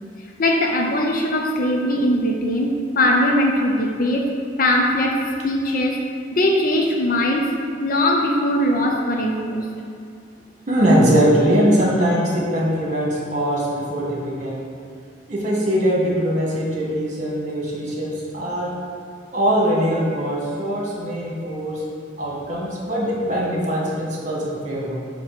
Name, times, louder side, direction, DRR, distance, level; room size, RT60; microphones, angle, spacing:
voice 1, 0.4-4.3 4.6-6.0 6.3-7.5 7.8-9.7, left 1 dB, 50° left, 0 dB, 0.6 m, -20 dB
voice 2, 10.7-14.7 15.3-18.7 19.3-21.8 22.2-24.9, equal, 40° right, -4 dB, 1.5 m, -21 dB
6.9 x 3.1 x 5.9 m, 2.3 s
head